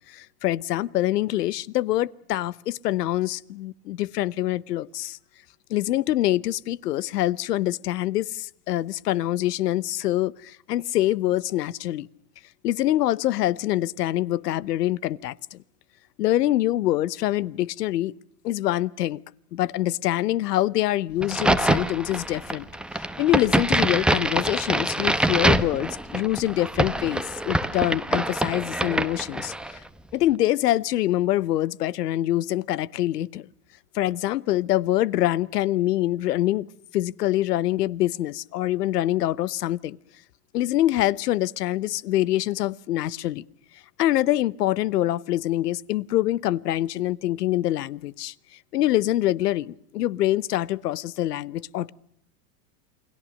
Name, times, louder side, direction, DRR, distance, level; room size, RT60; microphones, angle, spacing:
voice 1, 0.1-5.2 5.7-12.1 12.6-15.6 16.2-18.1 18.4-19.2 19.5-22.7 22.9-29.8 30.1-33.4 33.9-36.7 36.9-40.0 40.5-43.4 44.0-48.3 48.7-51.9, left 14 dB, 80° left, 1.0 m, -25 dB
Crack, 21.2-29.8, right 1 dB, ahead, 0.9 m, -25 dB
29.0 x 21.5 x 6.5 m
hypercardioid pair, 120°, 47 cm